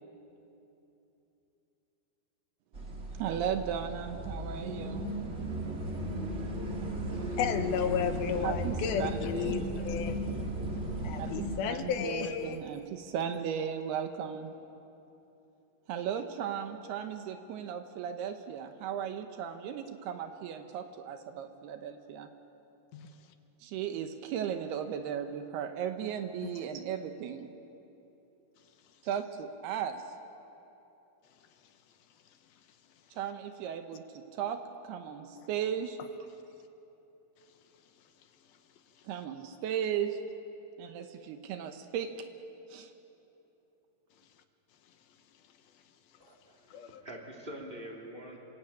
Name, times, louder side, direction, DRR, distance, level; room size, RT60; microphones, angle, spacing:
sound 1, 2.7-11.6, right 1 dB, 35° right, 1.1 m, -36 dB
voice 1, 3.2-5.1 8.4-9.7 11.2-14.5 15.9-22.3 22.9-23.1 23.6-27.5 29.0-30.0 33.1-36.0 39.0-40.2 40.8-42.3 42.7-42.9, right 8 dB, 80° right, 7 dB, 3.0 m, -36 dB
voice 2, 7.4-10.5 11.0-12.6 22.9-23.1 26.4-26.5 35.4-35.5 46.7-47.0, left 8 dB, 75° left, 7 dB, 2.8 m, -33 dB
voice 3, 46.2-48.4, right 1 dB, 15° right, -1 dB, 2.9 m, -45 dB
27.0 x 23.0 x 8.9 m, 3.0 s
omnidirectional pair, 4.6 m